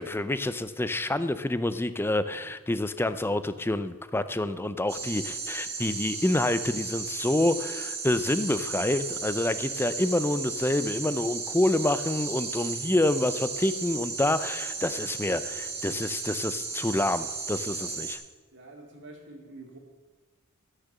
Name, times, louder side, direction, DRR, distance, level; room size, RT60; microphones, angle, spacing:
voice 1, 0.0-18.2, left 1 dB, 10° left, 13 dB, 0.5 m, -27 dB
sound 1, 4.9-18.2, right 4 dB, 30° right, 2.0 m, -35 dB
voice 2, 5.0-5.5 17.7-18.1 18.5-19.8, right 2 dB, 55° right, 1 dB, 2.7 m, -49 dB
13.5 x 6.7 x 7.4 m, 1.3 s
head